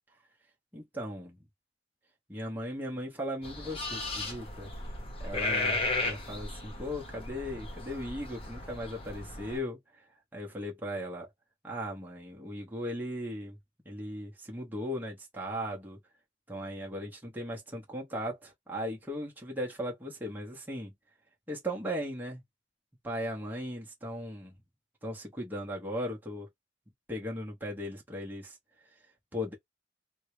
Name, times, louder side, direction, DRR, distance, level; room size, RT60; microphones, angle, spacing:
voice 1, 0.7-1.4 2.3-4.7 5.2-10.1 10.3-11.3 11.6-13.6 13.9-16.0 16.5-20.9 21.5-22.4 23.0-24.5 25.0-26.5 27.1-28.6 29.3-29.5, equal, 10° right, 0.9 m, -37 dB
sound 1, 3.4-9.6, left 3 dB, 30° left, 1.0 m, -35 dB
3.7 x 2.2 x 3.2 m
head